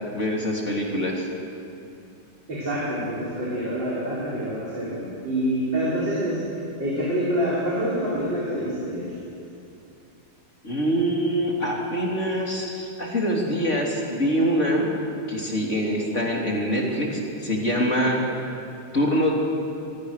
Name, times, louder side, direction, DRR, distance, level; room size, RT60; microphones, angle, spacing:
voice 1, 0.1-1.3 10.6-14.9 15.3-18.2 18.9-19.3, equal, 35° left, -1 dB, 3.3 m, -24 dB
voice 2, 2.5-9.1, equal, 55° right, -8 dB, 5.3 m, -26 dB
26.0 x 22.0 x 6.6 m, 2.8 s
omnidirectional pair, 2.3 m